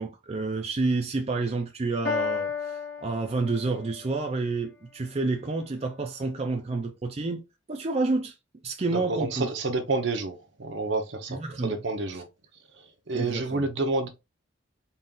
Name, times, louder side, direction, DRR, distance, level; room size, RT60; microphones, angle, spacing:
voice 1, 0.0-7.4 7.7-8.3 8.6-9.5 11.3-11.8 13.1-13.6, right 3 dB, 35° right, 0.5 m, -29 dB
Piano, 2.0-4.0, left 6 dB, 70° left, 1.5 m, -32 dB
voice 2, 8.9-12.3 12.8-14.1, right 3 dB, 65° right, 0.8 m, -29 dB
4.2 x 2.4 x 3.7 m
head